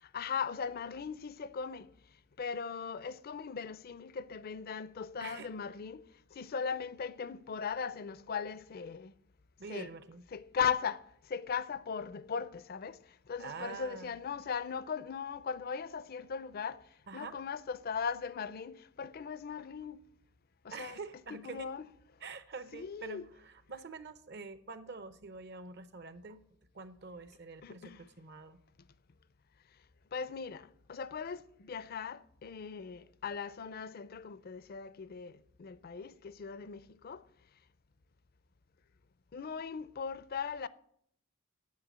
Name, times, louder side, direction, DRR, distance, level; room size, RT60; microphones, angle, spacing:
voice 1, 0.1-1.9 2.4-6.1 6.3-9.1 9.7-9.9 10.3-11.0 11.3-13.0 13.3-16.8 17.1-20.0 20.6-21.0 21.3-21.9 22.7-23.3 27.6-28.0 30.1-37.2 39.3-40.7, left 6 dB, 50° left, 0.5 m, -38 dB
voice 2, 5.2-5.5 9.6-10.2 13.4-14.2 17.1-17.4 20.7-21.7 22.2-26.4 26.7-28.6, right 4 dB, 55° right, 0.8 m, -46 dB
9.6 x 7.1 x 7.4 m
head